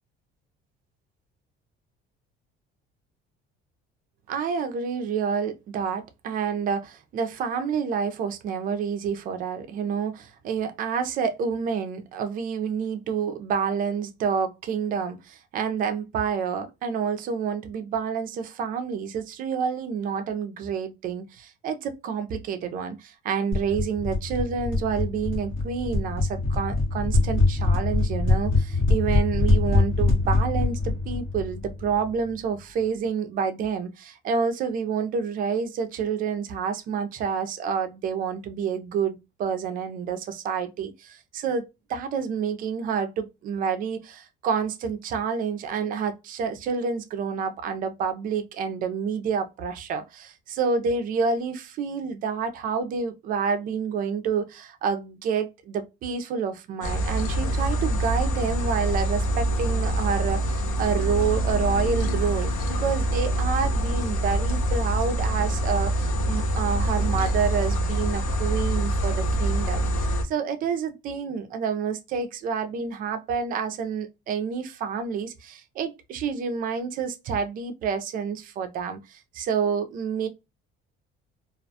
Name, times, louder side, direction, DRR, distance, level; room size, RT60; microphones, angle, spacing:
voice 1, 4.3-80.3, right 6 dB, 40° right, 0.4 m, -28 dB
sound 1, 23.5-32.2, left 3 dB, 70° left, 1.1 m, -24 dB
sound 2, 56.8-70.2, right 1 dB, 85° left, 0.6 m, -25 dB
2.4 x 2.1 x 2.6 m
cardioid pair, 175°, 21 cm